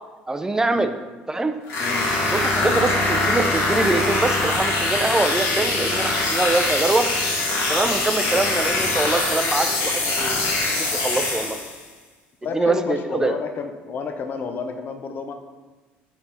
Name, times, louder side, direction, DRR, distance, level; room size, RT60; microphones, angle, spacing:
voice 1, 0.3-0.9 1.3-1.5 2.3-7.1 7.7-10.4 10.7-11.6 12.5-13.3, right 2 dB, 15° right, 8 dB, 0.5 m, -24 dB
sound 1, 1.7-11.8, left 2 dB, 70° left, 1.5 m, -23 dB
voice 2, 12.4-15.3, left 5 dB, 50° left, 6 dB, 0.6 m, -30 dB
5.7 x 4.4 x 4.0 m, 1.2 s
supercardioid pair, 80°, 4 cm